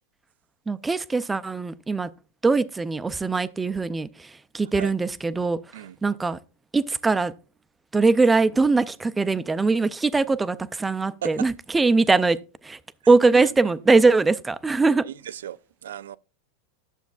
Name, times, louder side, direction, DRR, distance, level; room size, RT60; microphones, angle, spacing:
voice 1, 0.7-2.1 2.4-4.3 4.5-5.6 6.0-6.4 6.7-7.3 7.9-12.4 12.6-12.8 13.1-15.1, right 3 dB, 10° right, 0.4 m, -21 dB
voice 2, 13.0-13.8 15.0-16.2, right 10 dB, 90° right, 0.4 m, -36 dB
11.5 x 7.0 x 2.4 m
supercardioid pair, 135°, 0 cm